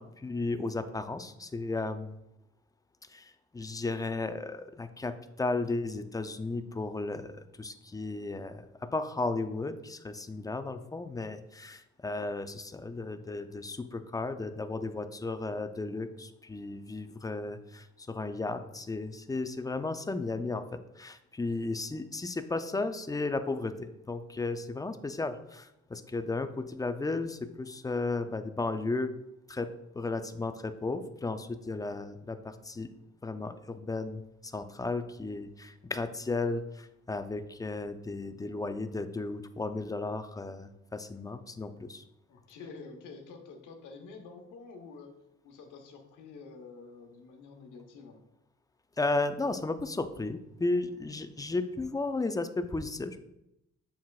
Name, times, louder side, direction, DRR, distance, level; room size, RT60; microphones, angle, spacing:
voice 1, 0.0-2.2 3.1-29.1 29.5-32.9 33.2-42.0 49.0-53.2, left 3 dB, 10° left, 10 dB, 0.4 m, -34 dB
voice 2, 42.3-45.1 45.4-48.2, left 4 dB, 90° left, 4 dB, 1.0 m, -48 dB
7.2 x 5.8 x 2.4 m, 0.85 s
cardioid pair, 90°, 30 cm